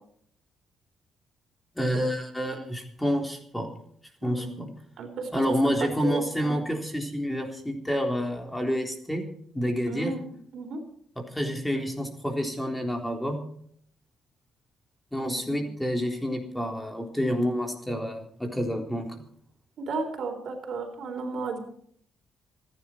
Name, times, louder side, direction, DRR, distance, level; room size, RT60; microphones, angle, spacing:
voice 1, 1.8-3.7 4.2-4.7 5.3-9.2 9.5-10.1 11.3-13.4 15.1-19.1, equal, 5° left, 2 dB, 3.7 m, -28 dB
voice 2, 4.2-4.6 5.0-5.3 6.0-6.6 9.9-10.8 15.2-15.7 19.8-21.6, right 4 dB, 65° right, 5 dB, 3.9 m, -34 dB
27.0 x 10.5 x 4.5 m, 0.63 s
cardioid pair, 90°, 0 cm